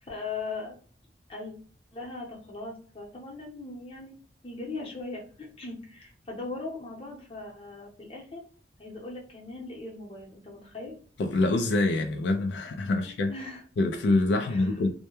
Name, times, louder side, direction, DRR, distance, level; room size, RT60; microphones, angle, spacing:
voice 1, 0.0-0.8 1.3-1.5 1.9-4.1 4.4-8.4 8.8-10.9 12.9-13.6 14.4-14.7, left 3 dB, 30° left, 0.8 m, -39 dB
voice 2, 11.2-13.3 13.8-14.9, left 2 dB, 80° left, 0.3 m, -25 dB
2.1 x 2.1 x 3.0 m
head